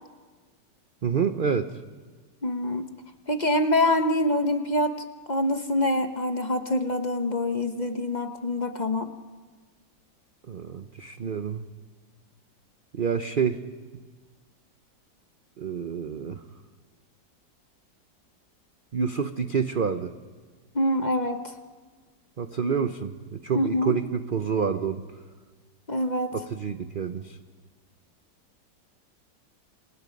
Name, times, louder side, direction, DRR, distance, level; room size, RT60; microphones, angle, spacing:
voice 1, 1.0-1.7 10.5-11.6 12.9-13.6 15.6-16.4 18.9-20.1 22.4-25.0 26.3-27.4, right 6 dB, 50° right, 9 dB, 0.6 m, -28 dB
voice 2, 2.4-2.9 3.3-4.9 5.3-9.1 11.2-11.3 20.7-21.6 23.5-24.0 25.9-26.3, left 1 dB, 35° left, 7 dB, 0.8 m, -25 dB
28.0 x 28.0 x 5.3 m, 1.4 s
omnidirectional pair, 2.0 m